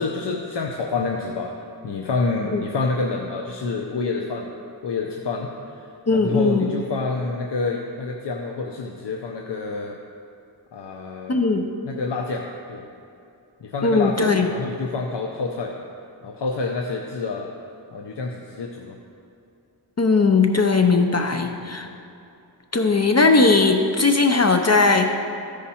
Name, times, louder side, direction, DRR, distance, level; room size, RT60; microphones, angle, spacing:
voice 1, 0.0-1.5 1.8-4.5 4.8-10.0 10.7-11.4 11.8-12.8 13.6-15.8 16.2-17.5 17.9-19.0 21.6-21.7, left 3 dB, 75° left, 1 dB, 0.7 m, -28 dB
voice 2, 6.1-6.7 11.3-11.7 13.8-14.5 20.0-21.9 22.7-25.1, left 3 dB, 40° left, 5 dB, 0.6 m, -18 dB
14.5 x 4.9 x 4.3 m, 2.7 s
wide cardioid pair, 65°, 41 cm